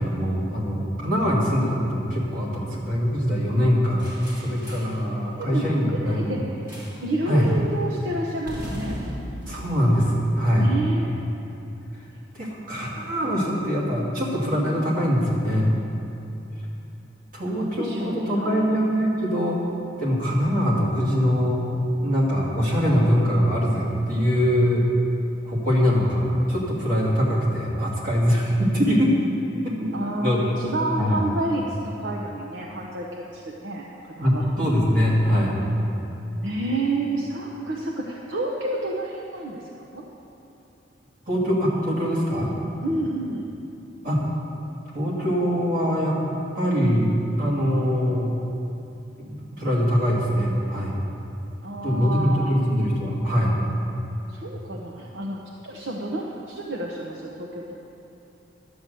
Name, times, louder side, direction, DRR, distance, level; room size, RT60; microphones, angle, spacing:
voice 1, 0.0-4.1 4.4-6.4 7.3-7.5 9.5-10.7 12.3-15.8 17.3-19.6 20.0-21.6 22.0-24.9 25.4-29.1 29.6-29.9 30.2-30.4 31.0-31.2 34.2-35.6 41.3-42.5 44.0-44.4 44.9-47.1 47.4-48.3 49.2-50.9 51.8-53.5, equal, 50° right, -4 dB, 2.5 m, -23 dB
sound 1, 4.0-5.0 6.7-7.1 7.4-7.7 8.5-10.8, equal, 20° right, 2.6 m, -37 dB
voice 2, 5.4-6.4 7.0-9.0 10.5-11.2 14.6-14.7 17.5-18.8 20.2-20.4 29.9-34.5 35.3-35.5 36.3-40.0 42.8-43.5 51.6-52.6 54.3-57.7, right 2 dB, 75° right, -1 dB, 0.9 m, -30 dB
11.5 x 7.9 x 6.6 m, 2.8 s
head